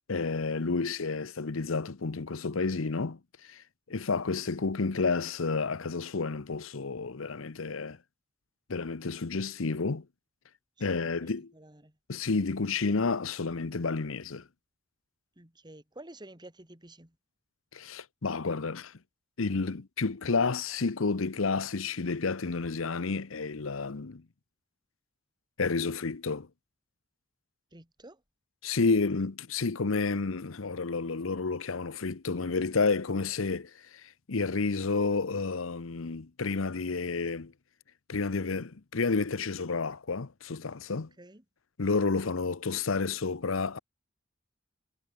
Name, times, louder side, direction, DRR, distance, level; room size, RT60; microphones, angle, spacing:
voice 1, 0.1-8.0 8.7-10.1 10.8-11.5 12.1-14.5 17.7-18.9 19.4-24.2 25.6-26.5 28.6-37.5 38.1-41.1 41.8-43.8, left 4 dB, 85° left, 0.9 m, -30 dB
voice 2, 11.5-12.0 15.4-17.1 27.7-28.2 40.9-41.4, right 1 dB, 20° right, 2.9 m, -51 dB
head